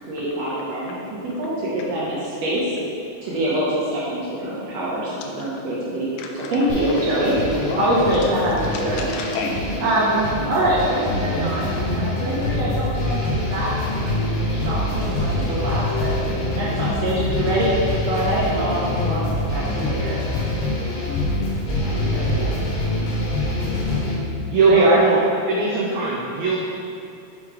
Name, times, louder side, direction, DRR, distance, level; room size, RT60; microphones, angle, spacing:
voice 1, 0.0-2.8 3.2-6.1 6.3-7.4 7.7-9.0 9.8-17.8 18.0-20.2 21.6-22.7 24.7-25.0, right 1 dB, 70° right, -7 dB, 1.8 m, -24 dB
voice 2, 6.2-6.6 7.4-7.8 8.1-9.7, left 4 dB, 80° left, 2 dB, 2.2 m, -32 dB
sound 1, 6.7-24.2, left 1 dB, 60° left, 2.2 m, -25 dB
voice 3, 24.5-25.2 25.5-26.6, right 3 dB, 85° right, -3 dB, 1.6 m, -19 dB
6.7 x 4.4 x 3.7 m, 2.7 s
omnidirectional pair, 3.8 m